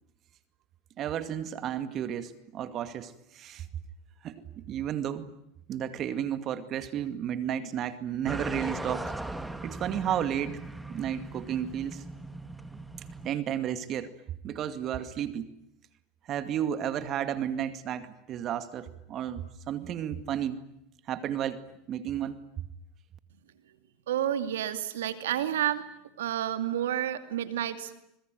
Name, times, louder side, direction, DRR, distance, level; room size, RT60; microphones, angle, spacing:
voice 1, 1.0-3.7 4.2-5.3 5.7-9.1 9.6-10.6 10.9-12.0 13.2-14.1 14.4-15.5 16.3-20.6 21.1-21.6 21.9-22.4, right 10 dB, 40° right, 11 dB, 2.2 m, -32 dB
sound 1, 8.3-13.3, right 2 dB, 5° right, 2.1 m, -39 dB
voice 2, 24.1-25.8 26.2-27.9, right 11 dB, 85° right, 10 dB, 2.5 m, -30 dB
26.0 x 21.5 x 9.4 m, 0.79 s
supercardioid pair, 110°, 0 cm